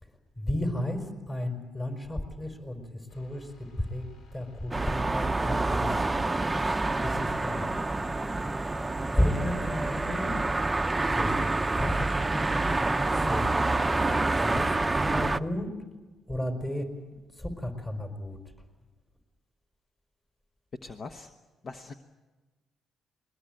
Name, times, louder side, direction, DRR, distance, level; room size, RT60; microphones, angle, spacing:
voice 1, 0.0-6.5 7.0-7.7 9.1-10.3 11.1-11.3 11.8-12.7 13.1-13.9 14.3-15.7 16.3-16.9 17.3-18.4, left 1 dB, 20° left, 6 dB, 4.8 m, -33 dB
sound 1, 3.1-10.0, left 3 dB, 75° left, 4.3 m, -54 dB
sound 2, 4.7-15.4, right 2 dB, 15° right, 0.7 m, -27 dB
voice 2, 20.8-21.3 21.6-21.9, left 3 dB, 45° left, 6 dB, 1.2 m, -41 dB
21.5 x 21.0 x 9.0 m, 1.2 s
cardioid pair, 90°, 0 cm